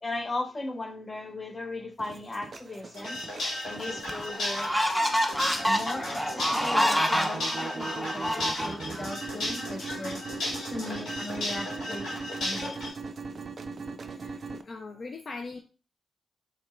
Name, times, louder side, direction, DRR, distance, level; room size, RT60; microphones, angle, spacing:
voice 1, 0.0-3.2 3.6-4.7 5.7-10.2 10.7-12.1 12.4-13.0, left 2 dB, 35° left, 6 dB, 0.8 m, -37 dB
sound 1, 2.0-14.6, right 4 dB, 55° right, 0.3 m, -40 dB
sound 2, 2.9-12.9, left 1 dB, 80° left, 1.9 m, -35 dB
sound 3, 3.4-3.5 4.1-9.0, equal, 5° left, 0.8 m, -27 dB
voice 2, 14.1-15.6, left 3 dB, 55° left, 4 dB, 0.5 m, -41 dB
4.3 x 2.9 x 2.5 m, 0.34 s
supercardioid pair, 45°, 0 cm